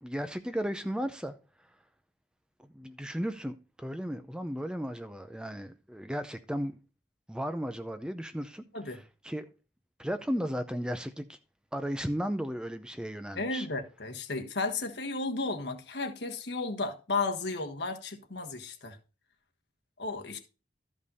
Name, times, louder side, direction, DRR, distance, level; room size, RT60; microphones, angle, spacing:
voice 1, 0.0-1.4 2.6-6.8 7.3-9.5 10.0-11.4 11.7-13.7, equal, 5° right, 0.5 m, -35 dB
voice 2, 13.4-19.0 20.0-20.4, left 3 dB, 70° left, 1.4 m, -34 dB
12.5 x 5.3 x 4.1 m
head